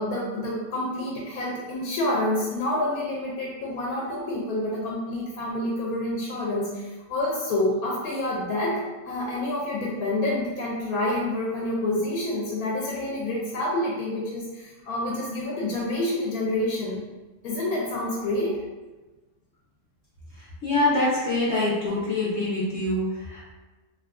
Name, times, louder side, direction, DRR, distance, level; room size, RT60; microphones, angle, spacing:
voice 1, 0.0-17.0 17.4-18.6, left 1 dB, 75° left, -4 dB, 1.1 m, -28 dB
voice 2, 20.3-23.4, left 2 dB, 60° left, -7 dB, 0.8 m, -25 dB
2.7 x 2.3 x 3.5 m, 1.2 s
omnidirectional pair, 1.6 m